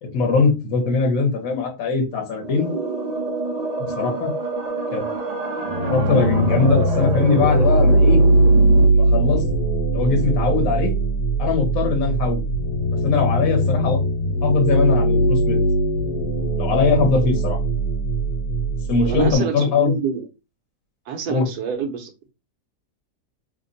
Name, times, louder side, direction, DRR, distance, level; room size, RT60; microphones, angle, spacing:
voice 1, 0.0-2.7 3.8-4.3 4.9-5.0 5.9-8.2 8.9-9.5 9.9-11.0 11.4-12.4 13.0-14.0 14.4-15.6 16.6-17.6 18.9-20.0 21.3-21.5, left 4 dB, 60° left, 1.4 m, -21 dB
sound 1, 2.4-8.9, right 4 dB, 60° right, 0.4 m, -26 dB
sound 2, 5.7-19.3, right 1 dB, 80° left, 1.3 m, -20 dB
voice 2, 19.0-20.3 21.1-22.3, right 6 dB, 80° right, 1.3 m, -27 dB
3.4 x 2.1 x 3.9 m
omnidirectional pair, 1.7 m